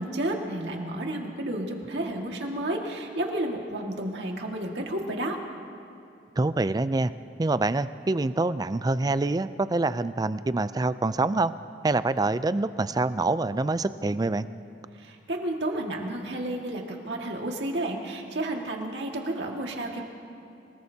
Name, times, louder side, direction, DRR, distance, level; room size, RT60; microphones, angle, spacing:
voice 1, 0.0-5.4 15.0-20.0, right 1 dB, 70° right, 1 dB, 1.9 m, -31 dB
voice 2, 6.4-7.1 7.4-11.5 11.8-14.5, right 2 dB, 20° right, 14 dB, 0.4 m, -26 dB
26.0 x 18.5 x 2.8 m, 2.8 s
head